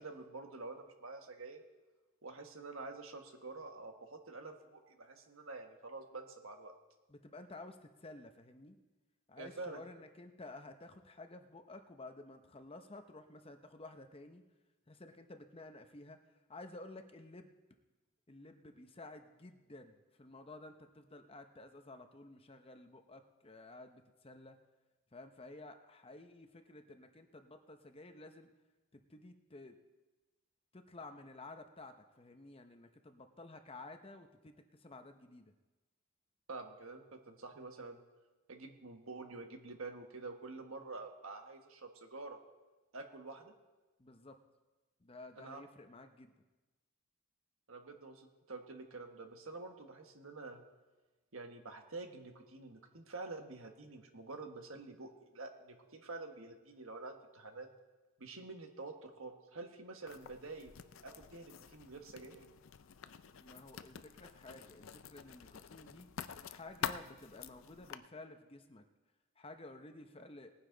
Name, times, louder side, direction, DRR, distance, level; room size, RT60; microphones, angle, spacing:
voice 1, 0.0-1.6 2.2-6.7 9.4-9.8 36.5-38.0 38.5-42.4 42.9-43.5 45.4-45.6 47.7-50.6 51.3-57.7 58.2-60.7 61.0-62.4, right 3 dB, 70° right, 5 dB, 1.4 m, -48 dB
voice 2, 7.1-8.8 9.3-14.4 14.9-16.2 16.5-17.6 18.3-24.6 25.1-28.5 28.9-29.8 30.7-35.5 44.0-44.4 45.0-46.3 63.4-66.1 66.5-68.8 69.4-70.5, left 2 dB, 25° left, 7 dB, 0.8 m, -53 dB
Writing, 60.1-68.0, left 7 dB, 60° left, 0.5 m, -47 dB
19.0 x 9.9 x 3.9 m, 1.2 s
head